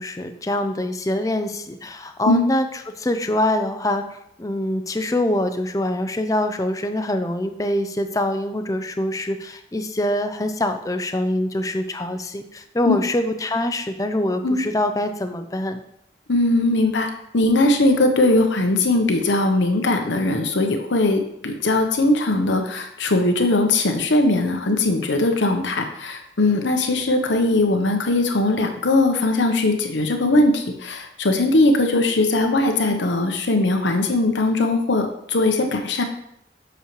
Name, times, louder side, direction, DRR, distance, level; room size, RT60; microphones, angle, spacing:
voice 1, 0.0-15.8, left 1 dB, 20° left, 7 dB, 0.5 m, -24 dB
voice 2, 16.3-36.0, left 2 dB, 90° left, 5 dB, 0.9 m, -20 dB
8.1 x 6.3 x 3.1 m, 0.74 s
head